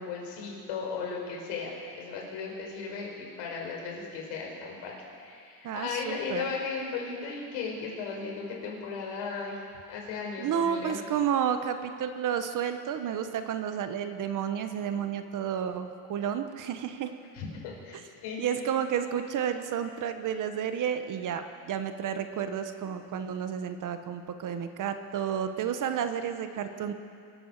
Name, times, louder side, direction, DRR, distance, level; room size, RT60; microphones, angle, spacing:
voice 1, 0.0-9.6 9.9-11.0 17.3-18.4, left 5 dB, 90° left, -1 dB, 4.5 m, -36 dB
voice 2, 5.6-6.4 10.4-17.1 18.4-26.9, right 8 dB, 40° right, 8 dB, 1.0 m, -31 dB
24.0 x 8.8 x 6.6 m, 2.4 s
cardioid pair, 145°, 46 cm